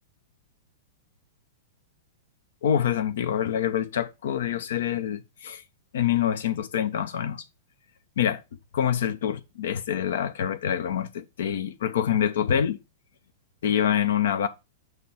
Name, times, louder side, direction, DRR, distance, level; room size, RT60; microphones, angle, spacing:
voice 1, 2.6-5.6 5.9-7.4 8.2-8.4 8.7-12.8 13.6-14.5, left 9 dB, 60° left, 0.9 m, -26 dB
8.2 x 3.2 x 5.5 m
figure-of-eight pair, 100°, 0 cm